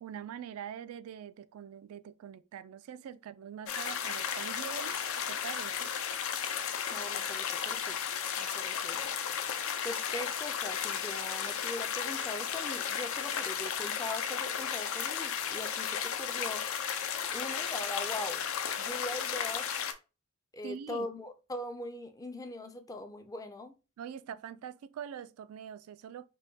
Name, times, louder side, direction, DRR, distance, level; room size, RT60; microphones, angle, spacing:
voice 1, 0.0-5.0 5.3-5.9 20.6-21.1 24.0-26.3, right 8 dB, 75° right, 0.3 m, -44 dB
sound 1, 3.7-19.9, left 8 dB, 70° left, 0.5 m, -34 dB
voice 2, 6.9-8.0 8.4-9.1 9.8-16.7 17.3-18.4 18.8-19.7 20.5-23.7, left 1 dB, 15° left, 0.4 m, -41 dB
5.4 x 2.2 x 2.7 m
head